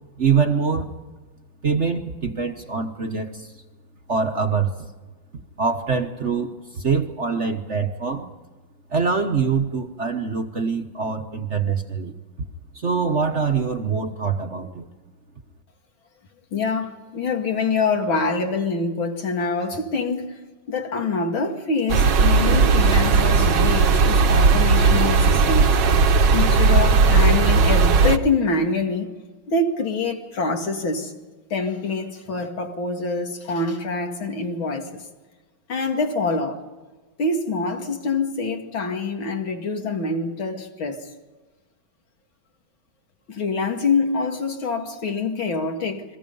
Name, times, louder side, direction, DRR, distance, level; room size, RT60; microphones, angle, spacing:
voice 1, 0.2-0.9 1.6-3.5 4.1-4.7 5.6-8.3 8.9-12.1 12.7-14.9, right 5 dB, 40° right, 1.3 m, -24 dB
voice 2, 16.5-20.4 20.7-25.9 26.3-29.1 29.5-31.1 31.5-35.0 35.7-36.6 37.2-41.1 43.3-46.0, left 3 dB, 75° left, 2.9 m, -25 dB
sound 1, 21.9-28.2, right 4 dB, 65° right, 1.7 m, -17 dB
29.5 x 22.5 x 5.5 m
omnidirectional pair, 2.2 m